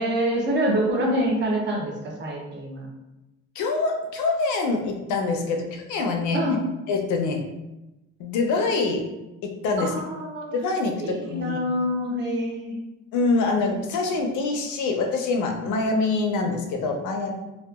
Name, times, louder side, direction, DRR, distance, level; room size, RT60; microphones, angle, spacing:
voice 1, 0.0-2.9 6.3-6.6 9.8-10.6 11.0-12.8, equal, 35° right, -1 dB, 0.5 m, -26 dB
voice 2, 3.6-6.4 6.9-7.4 8.2-9.0 9.4-9.9 10.5-11.6 13.1-17.3, left 3 dB, 70° left, 2 dB, 0.5 m, -25 dB
2.7 x 2.2 x 2.3 m, 1.0 s
cardioid pair, 160°, 30 cm